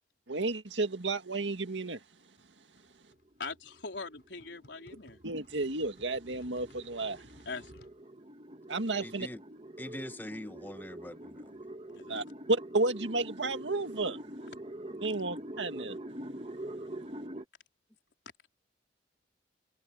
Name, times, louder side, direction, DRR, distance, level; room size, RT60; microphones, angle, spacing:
voice 1, 0.3-2.0 5.2-7.3 8.7-9.3 12.1-14.2 15.0-16.0, right 2 dB, 90° right, 2.0 m, -32 dB
sound 1, 2.3-8.0, equal, 60° left, 5.8 m, -60 dB
sound 2, 3.1-17.4, right 1 dB, 35° right, 1.8 m, -45 dB
voice 2, 3.4-5.2 7.5-7.8 11.9-12.2, left 4 dB, 80° left, 3.9 m, -42 dB
voice 3, 9.0-9.4 9.8-11.6, left 1 dB, 10° left, 0.9 m, -43 dB
head